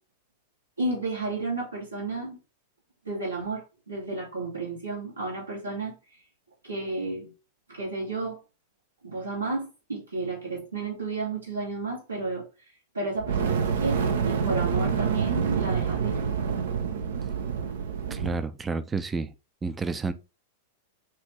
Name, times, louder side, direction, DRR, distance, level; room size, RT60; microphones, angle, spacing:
voice 1, 0.8-2.4 3.0-5.9 6.6-7.3 7.7-8.4 9.0-12.4 12.9-16.2, right 3 dB, 85° right, 2.2 m, -32 dB
Fire, 13.2-18.5, right 6 dB, 65° right, 0.7 m, -27 dB
voice 2, 18.1-19.3 19.6-20.1, right 4 dB, 15° right, 0.5 m, -30 dB
5.5 x 2.6 x 3.2 m
figure-of-eight pair, 95°, 0 cm